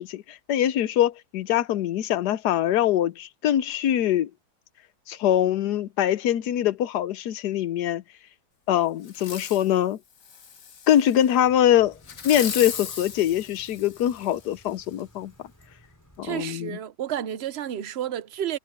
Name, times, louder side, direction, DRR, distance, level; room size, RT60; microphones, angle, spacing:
voice 1, 0.0-4.3 5.1-8.0 8.7-10.0 10.9-12.0 12.2-15.3 16.2-16.8, left 11 dB, 85° left, 1.3 m, -23 dB
Fireworks, 9.1-9.7 10.2-11.3 12.0-14.4 15.0-15.1, left 6 dB, 55° left, 1.7 m, -37 dB
sound 1, 11.4-16.4, equal, 10° left, 5.9 m, -56 dB
voice 2, 16.2-18.6, right 10 dB, 55° right, 0.8 m, -31 dB
omnidirectional pair, 1.7 m